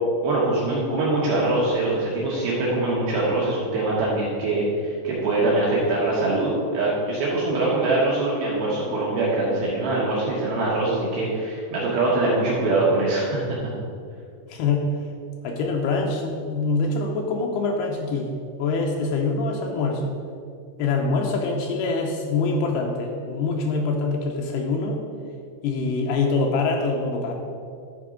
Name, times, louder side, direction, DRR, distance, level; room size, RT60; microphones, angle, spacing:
voice 1, 0.2-13.4, right 2 dB, 70° right, -6 dB, 2.7 m, -23 dB
voice 2, 14.5-15.0 15.4-18.3 18.6-20.1 20.8-25.0 25.6-27.3, left 3 dB, 80° left, 1 dB, 2.3 m, -24 dB
11.0 x 4.5 x 5.0 m, 2.3 s
omnidirectional pair, 5.4 m